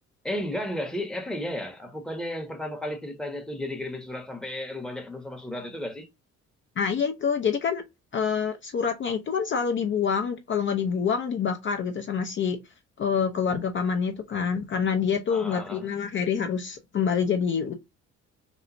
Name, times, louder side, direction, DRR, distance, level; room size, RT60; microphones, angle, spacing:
voice 1, 0.2-6.1 15.3-15.9, left 1 dB, ahead, 0.7 m, -33 dB
voice 2, 6.8-7.8 8.1-12.6 13.0-17.7, left 6 dB, 40° left, 0.4 m, -26 dB
2.9 x 2.0 x 2.4 m
cardioid pair, 90°, 30 cm